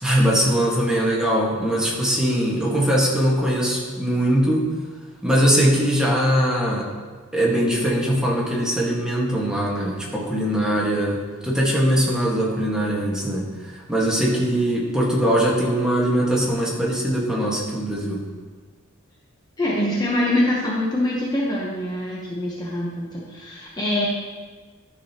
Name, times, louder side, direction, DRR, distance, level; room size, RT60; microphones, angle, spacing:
voice 1, 0.0-4.7 5.2-6.9 7.3-18.2, equal, 5° right, -4 dB, 1.5 m, -21 dB
voice 2, 19.6-24.1, left 1 dB, 20° left, -5 dB, 1.0 m, -24 dB
12.5 x 6.3 x 2.9 m, 1.4 s
head